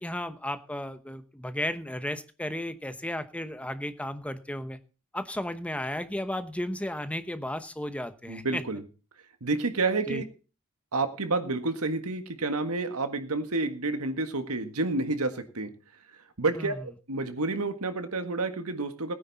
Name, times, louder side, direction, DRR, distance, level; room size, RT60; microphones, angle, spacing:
voice 1, 0.0-4.8 5.1-8.6 10.1-10.2 16.6-16.7, left 1 dB, 5° left, 11 dB, 0.9 m, -34 dB
voice 2, 8.3-8.8 9.4-10.2 10.9-15.7 16.4-19.1, right 3 dB, 85° right, 9 dB, 1.7 m, -29 dB
17.5 x 9.7 x 4.1 m, 0.33 s
head